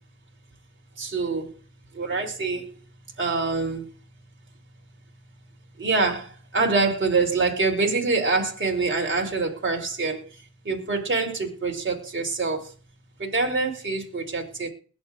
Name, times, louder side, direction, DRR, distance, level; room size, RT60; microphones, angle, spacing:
voice 1, 1.0-1.5 2.0-2.6 3.2-3.8 5.8-6.3 6.5-10.2 10.7-12.6 13.2-14.7, right 3 dB, 30° right, 3.5 m, -25 dB
21.0 x 7.3 x 2.5 m
cardioid pair, 85°, 39 cm